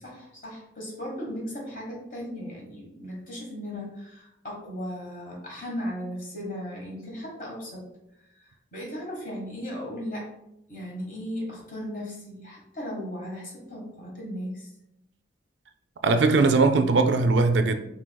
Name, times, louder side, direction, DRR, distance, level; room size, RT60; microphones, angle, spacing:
voice 1, 0.0-7.9 8.3-10.3 10.7-14.7, equal, 45° left, 1.4 m, -36 dB
voice 2, 16.0-17.8, right 3 dB, 65° right, 0.4 m, -20 dB
4.6 x 4.0 x 2.2 m
head